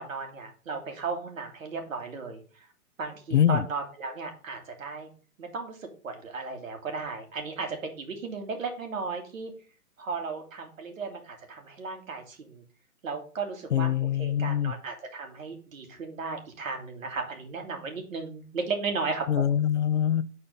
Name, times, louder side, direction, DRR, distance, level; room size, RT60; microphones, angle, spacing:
voice 1, 0.0-2.4 3.0-5.1 5.4-9.5 10.0-12.6 13.0-13.9 14.2-19.6, right 4 dB, 60° right, 2.2 m, -35 dB
voice 2, 3.3-3.6 13.7-14.7 19.3-20.2, left 10 dB, 55° left, 0.5 m, -24 dB
8.4 x 4.3 x 5.3 m
hypercardioid pair, 150°, 44 cm